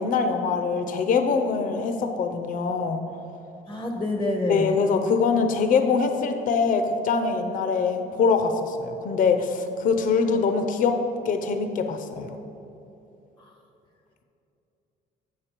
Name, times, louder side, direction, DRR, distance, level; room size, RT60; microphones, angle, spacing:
voice 1, 0.0-3.0 4.5-11.0 11.3-12.4, left 5 dB, 55° left, 7 dB, 0.6 m, -23 dB
voice 2, 3.7-4.7 13.4-13.5, left 1 dB, 15° left, 3 dB, 0.7 m, -27 dB
7.4 x 6.6 x 4.4 m, 2.9 s
cardioid pair, 110°, 17 cm